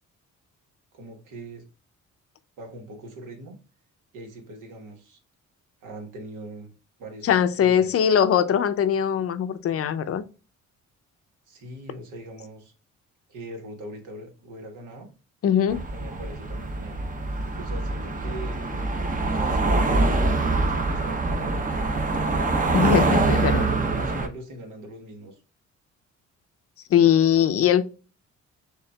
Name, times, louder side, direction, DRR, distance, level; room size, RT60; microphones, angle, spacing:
voice 1, 0.9-1.6 2.6-3.6 4.1-5.2 5.8-6.7 7.0-8.3 11.5-12.7 13.3-15.1 15.9-17.0 17.4-18.6 19.3-22.7 23.4-25.4, right 1 dB, 85° right, 1.2 m, -41 dB
voice 2, 7.2-10.2 15.4-15.8 22.7-23.7 26.9-27.8, left 9 dB, 50° left, 0.5 m, -21 dB
sound 1, 15.7-24.3, right 3 dB, 25° right, 0.7 m, -24 dB
6.5 x 2.5 x 2.2 m
cardioid pair, 90°, 30 cm